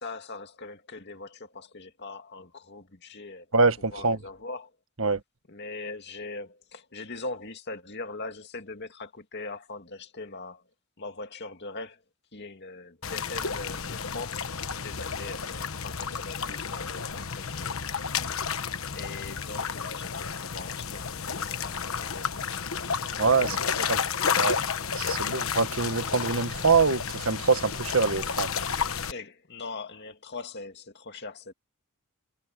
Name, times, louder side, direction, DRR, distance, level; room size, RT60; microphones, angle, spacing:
voice 1, 0.0-3.5 3.9-4.7 5.5-10.7 11.0-12.0 12.3-14.5 14.8-17.8 18.1-18.4 18.9-22.7 23.2-24.3 29.0-31.5, left 3 dB, 50° left, 2.3 m, -41 dB
voice 2, 3.5-4.2 5.0-5.2 23.2-23.6 23.9-24.0 24.4-24.6 24.9-28.5, right 4 dB, 65° right, 1.6 m, -24 dB
sound 1, 13.0-29.1, left 6 dB, 70° left, 1.2 m, -31 dB
head